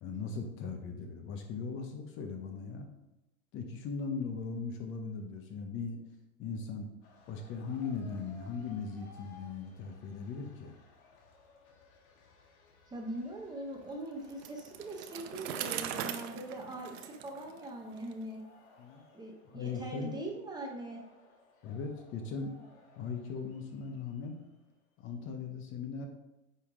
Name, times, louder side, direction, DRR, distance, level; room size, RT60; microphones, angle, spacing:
voice 1, 0.0-2.9 3.5-6.0 6.4-6.9 7.3-10.8 18.8-19.0 19.5-20.1 21.6-22.5 23.0-24.4 25.0-26.1, left 5 dB, 30° left, 4 dB, 0.8 m, -39 dB
sound 1, 7.0-24.8, left 3 dB, 70° left, 2.0 m, -60 dB
voice 2, 12.9-18.4 19.1-21.0, right 1 dB, 10° right, 0 dB, 0.8 m, -41 dB
Bicycle, 14.3-18.1, right 10 dB, 50° right, 0.7 m, -40 dB
9.5 x 3.6 x 3.7 m, 0.96 s
hypercardioid pair, 135°, 43 cm